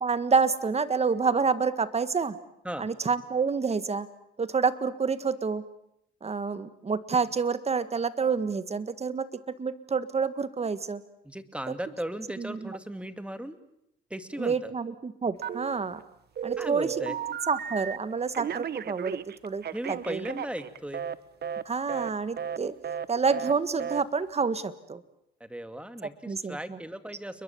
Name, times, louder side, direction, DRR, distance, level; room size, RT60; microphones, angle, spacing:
voice 1, 0.0-2.4 2.8-4.1 4.4-5.6 6.2-11.0 11.7-11.8 12.4-12.8 14.4-16.0 16.4-16.9 17.5-20.2 21.6-22.7 23.1-25.0 26.0-26.8, right 5 dB, 30° right, 13 dB, 1.7 m, -28 dB
voice 2, 11.2-13.6 14.1-14.7 16.6-17.2 19.7-21.0 25.4-27.4, right 1 dB, 5° right, 10 dB, 2.2 m, -37 dB
Telephone, 15.4-16.0 16.4-18.0 18.3-21.2 21.4-21.6 21.9-22.1 22.4-22.6 22.8-23.1 23.3-23.5 23.8-24.0, right 8 dB, 55° right, 1.0 m, -34 dB
29.5 x 22.0 x 7.2 m, 0.77 s
cardioid pair, 90°, 20 cm